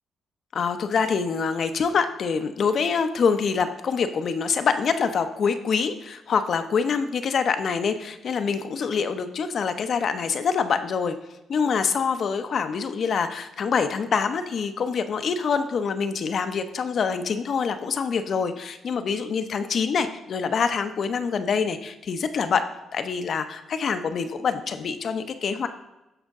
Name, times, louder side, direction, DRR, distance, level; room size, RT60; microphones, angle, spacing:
voice 1, 0.5-11.2 11.5-25.7, left 6 dB, 55° left, 9 dB, 0.8 m, -25 dB
15.0 x 5.1 x 3.7 m, 0.98 s
cardioid pair, 90°, 0 cm